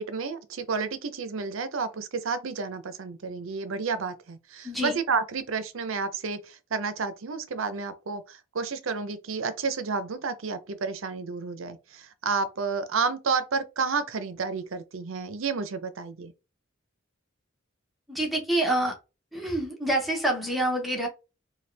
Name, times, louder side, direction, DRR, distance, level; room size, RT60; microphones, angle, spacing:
voice 1, 0.0-16.3, right 5 dB, 80° right, 0.6 m, -31 dB
voice 2, 4.6-5.0 18.1-19.0 19.3-21.1, right 1 dB, ahead, 1.0 m, -27 dB
4.3 x 2.3 x 3.3 m
head